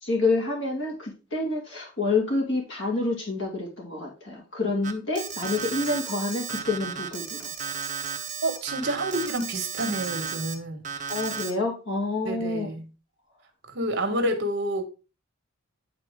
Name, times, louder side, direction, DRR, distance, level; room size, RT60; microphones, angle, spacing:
voice 1, 0.0-7.5 11.1-12.7, left 3 dB, 60° left, 2.6 m, -28 dB
Alarm, 4.8-10.5 10.8-11.5, right 6 dB, 35° right, 0.9 m, -34 dB
voice 2, 8.4-10.9 12.2-12.9 13.7-14.8, right 1 dB, 55° right, 1.5 m, -29 dB
10.5 x 4.1 x 3.6 m
head